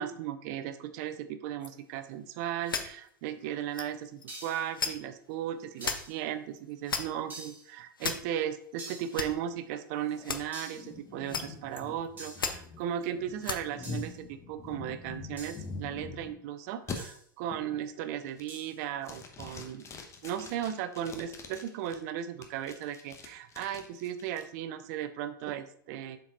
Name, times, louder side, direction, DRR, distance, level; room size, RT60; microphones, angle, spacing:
voice 1, 0.0-19.9 20.2-26.2, right 10 dB, 50° right, 11 dB, 0.7 m, -36 dB
sound 1, 1.6-1.7 2.3-2.4 2.6-3.1 3.7-3.9 4.2-4.3 4.7-4.9 5.8-6.0 6.6-7.3 8.0-8.2 8.8-9.3 10.2-10.4 11.3-11.4 11.7-12.1 12.3-13.1 13.4-13.6 13.9-14.0, left 5 dB, 85° left, 0.7 m, -34 dB
sound 2, 4.3-4.7 5.8-6.2 7.3-7.7 8.8-9.2 10.5-10.9 12.2-12.5 13.8-14.2 15.4-15.7 17.0-17.2 18.5-18.8, right 2 dB, 15° right, 2.2 m, -46 dB
sound 3, 10.1-16.4 16.9-17.0 17.5-17.8 18.2-18.7 19.0-22.0 22.4-24.4, left 4 dB, 25° left, 1.1 m, -44 dB
7.2 x 4.6 x 4.0 m, 0.65 s
figure-of-eight pair, 90°, 11 cm